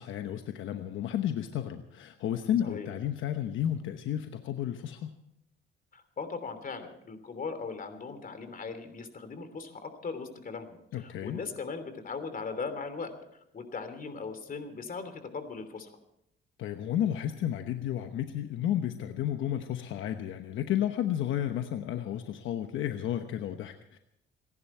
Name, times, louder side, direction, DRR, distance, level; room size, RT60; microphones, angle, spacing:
voice 1, 0.0-5.1 10.9-11.4 16.6-24.0, left 11 dB, 80° left, 7 dB, 1.0 m, -32 dB
voice 2, 5.9-15.9, left 4 dB, 45° left, 9 dB, 3.1 m, -39 dB
28.0 x 11.0 x 4.5 m, 0.78 s
cardioid pair, 90°, 20 cm